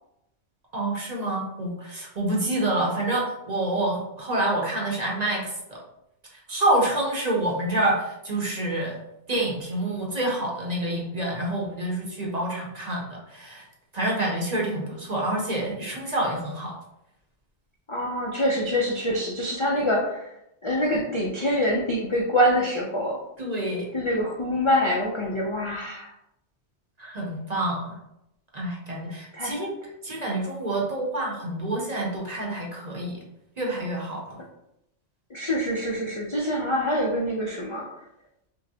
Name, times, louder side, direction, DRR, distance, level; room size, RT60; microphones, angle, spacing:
voice 1, 0.7-5.8 6.3-9.0 9.3-13.7 13.9-16.8 23.4-23.9 27.0-27.9 28.5-29.7 30.0-33.2 33.6-34.4, right 1 dB, 40° right, -2 dB, 0.7 m, -27 dB
voice 2, 17.9-20.3 20.6-23.2 23.9-26.1 29.3-29.6 35.3-37.9, equal, 50° left, -3 dB, 0.3 m, -25 dB
5.4 x 2.1 x 2.7 m, 0.83 s
omnidirectional pair, 1.3 m